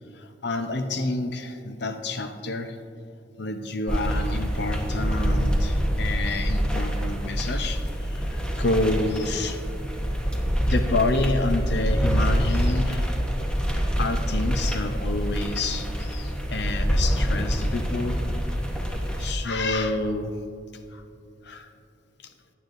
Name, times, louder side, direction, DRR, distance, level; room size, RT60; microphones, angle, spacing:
voice 1, 0.2-2.8 3.4-9.6 10.7-13.2 14.0-20.3 20.9-21.0 21.4-21.7, left 2 dB, 65° left, 8 dB, 0.6 m, -29 dB
sound 1, 3.9-19.3, equal, 5° left, 0.8 m, -26 dB
15.5 x 10.0 x 2.6 m, 2.5 s
head